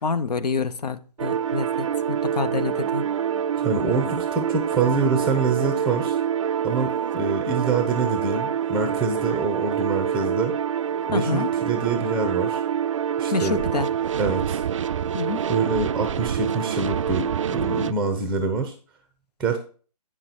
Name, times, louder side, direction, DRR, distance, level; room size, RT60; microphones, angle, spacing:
voice 1, 0.0-3.1 11.1-11.5 13.3-13.9 15.1-15.4, left 4 dB, 70° left, 0.8 m, -27 dB
sound 1, 1.2-17.9, right 8 dB, 50° right, 0.4 m, -26 dB
voice 2, 3.6-6.2 6.6-10.5 11.1-12.6 13.2-13.6 14.2-14.6 15.5-18.7 19.4-19.6, right 4 dB, 5° right, 0.6 m, -25 dB
8.8 x 6.0 x 4.2 m
figure-of-eight pair, 145°, 21 cm